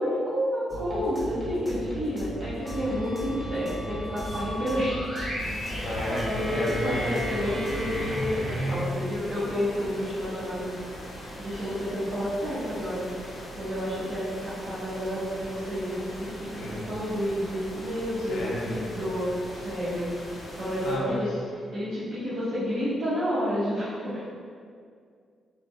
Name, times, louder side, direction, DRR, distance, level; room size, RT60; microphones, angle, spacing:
voice 1, 0.0-5.3 6.2-10.7 11.4-21.3 21.7-24.2, equal, 65° right, -13 dB, 0.7 m, -30 dB
sound 1, 0.7-8.2, equal, 10° left, 0.7 m, -38 dB
sound 2, 2.6-8.8, equal, 30° right, 1.1 m, -35 dB
sound 3, 5.4-21.0, equal, 45° left, 0.7 m, -41 dB
voice 2, 5.8-7.3 16.5-16.8 18.3-18.7 20.8-21.2, left 2 dB, 85° left, -4 dB, 0.5 m, -31 dB
2.6 x 2.1 x 2.5 m, 2.2 s
cardioid pair, 100°, 0 cm